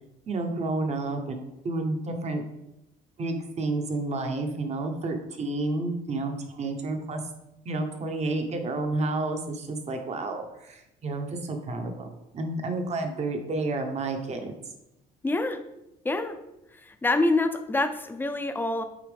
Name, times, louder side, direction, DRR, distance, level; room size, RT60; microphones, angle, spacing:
voice 1, 0.3-2.4 3.2-7.2 7.6-14.5, right 2 dB, 40° right, 5 dB, 1.1 m, -30 dB
voice 2, 15.2-15.6 16.0-16.4 16.7-18.8, left 2 dB, 10° left, 7 dB, 0.6 m, -26 dB
8.7 x 4.3 x 3.5 m, 0.89 s
cardioid pair, 110°, 17 cm